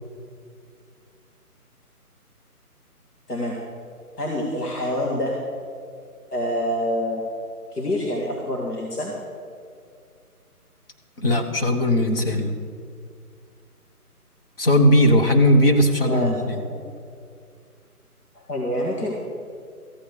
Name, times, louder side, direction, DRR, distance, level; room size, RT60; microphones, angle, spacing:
voice 1, 4.2-5.4 6.3-7.2 7.7-9.1 16.1-16.3 16.7-16.9 18.3-19.1, left 1 dB, 75° left, -2 dB, 2.4 m, -26 dB
voice 2, 11.2-12.5 14.6-16.6, left 1 dB, 40° left, 4 dB, 1.3 m, -18 dB
14.5 x 8.5 x 6.7 m, 2.2 s
figure-of-eight pair, 155°, 46 cm